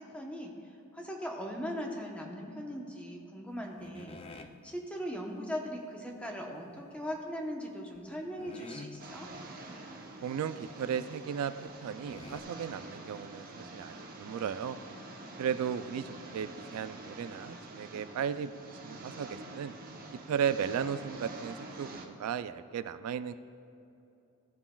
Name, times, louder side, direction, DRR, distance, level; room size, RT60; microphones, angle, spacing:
voice 1, 0.0-9.3, equal, 5° left, 1 dB, 0.8 m, -39 dB
sound 1, 3.8-4.6 7.0-7.4 7.9-8.0 8.4-9.2 9.7-9.8 10.0-10.2 10.8-10.9 11.7-11.8 12.1-12.4, left 3 dB, 25° left, 0.3 m, -48 dB
sound 2, 9.0-22.1, right 2 dB, 40° right, 0.8 m, -46 dB
voice 2, 10.2-14.8 15.4-18.5 18.8-19.7 20.3-23.3, right 8 dB, 80° right, 14 dB, 0.3 m, -35 dB
14.5 x 7.1 x 2.3 m, 2.8 s
head